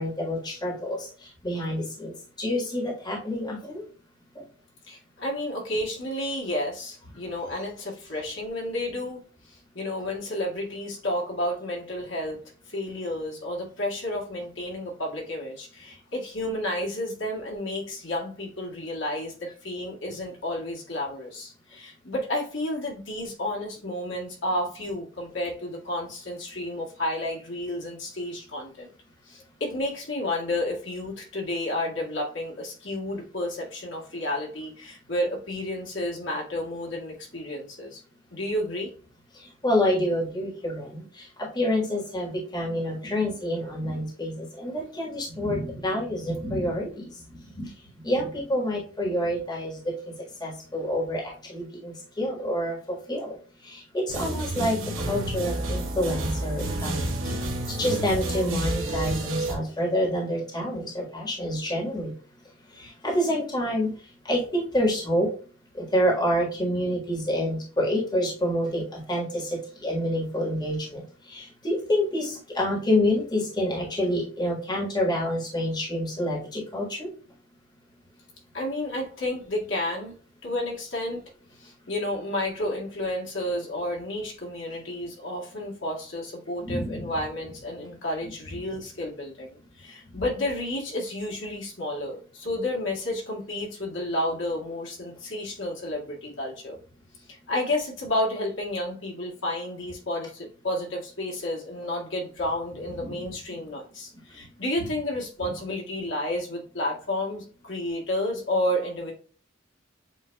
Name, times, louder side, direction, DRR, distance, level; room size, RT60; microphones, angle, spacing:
voice 1, 0.0-3.8 4.4-4.5 39.3-47.7 48.0-50.1 50.4-52.8 53.1-53.3 53.6-57.3 57.8-62.1 62.8-63.9 64.2-65.3 65.7-77.1 86.6-87.1 90.1-90.2 103.0-103.2, equal, 20° left, -3 dB, 1.6 m, -28 dB
voice 2, 4.8-12.4 12.7-28.9 29.2-38.0 38.3-38.9 78.5-80.2 80.4-81.3 81.6-89.5 89.8-96.8 97.3-109.1, left 1 dB, 70° left, -3 dB, 2.0 m, -31 dB
sound 1, 54.1-59.5, right 1 dB, 85° right, 1.3 m, -30 dB
7.9 x 2.7 x 2.3 m, 0.39 s
head